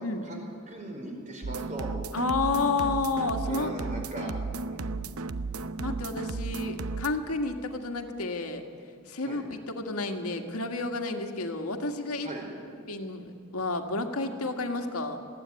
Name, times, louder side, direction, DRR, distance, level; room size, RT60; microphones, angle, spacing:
voice 1, 0.2-1.9 3.5-4.3 4.6-5.1 9.2-9.4 12.2-12.5, right 1 dB, 35° right, 1 dB, 4.4 m, -39 dB
sound 1, 1.4-7.1, right 3 dB, 85° right, 0.7 m, -34 dB
voice 2, 2.1-3.7 4.2-4.3 5.8-8.6 9.1-12.3 12.9-15.2, left 3 dB, 90° left, 5 dB, 1.8 m, -31 dB
20.0 x 15.0 x 9.6 m, 2.3 s
head